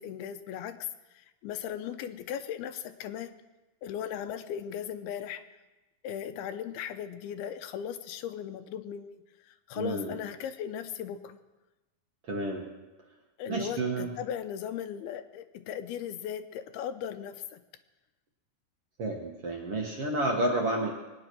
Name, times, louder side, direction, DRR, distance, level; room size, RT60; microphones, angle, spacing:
voice 1, 0.0-3.3 3.8-5.4 6.0-11.4 13.4-17.6, left 9 dB, 85° left, 9 dB, 2.7 m, -37 dB
voice 2, 9.7-10.2 12.3-12.7 13.5-14.1 19.0-20.9, right 2 dB, 55° right, 0 dB, 1.8 m, -30 dB
21.5 x 9.7 x 6.1 m, 1.1 s
omnidirectional pair, 4.4 m